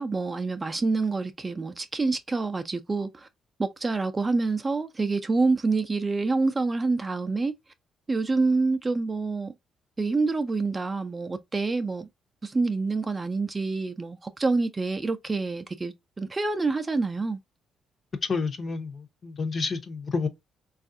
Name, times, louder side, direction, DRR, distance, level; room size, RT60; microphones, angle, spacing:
voice 1, 0.0-3.3 3.6-7.5 8.1-9.5 10.0-12.1 12.4-17.4, right 3 dB, 25° right, 0.4 m, -27 dB
voice 2, 18.3-20.3, left 4 dB, 45° left, 0.6 m, -29 dB
3.4 x 2.4 x 2.6 m
cardioid pair, 90°, 0 cm